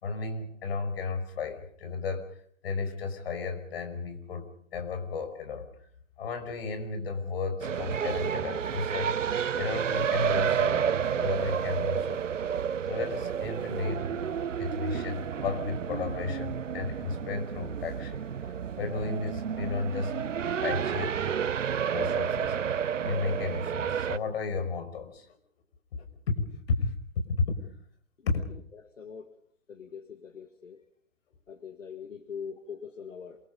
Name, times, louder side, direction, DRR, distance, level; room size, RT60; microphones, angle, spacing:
voice 1, 0.0-5.7 6.2-9.2 9.6-14.1 14.6-20.2 20.6-21.2 21.9-25.4 25.9-26.9 27.3-27.6 28.3-28.4, left 4 dB, 50° left, 8 dB, 5.6 m, -34 dB
sound 1, 7.6-24.2, right 8 dB, 80° right, 0.9 m, -30 dB
voice 2, 29.0-29.3 29.7-30.8 31.5-33.4, left 6 dB, 80° left, 8 dB, 2.1 m, -42 dB
27.5 x 23.0 x 5.4 m, 0.62 s
hypercardioid pair, 135°, 37 cm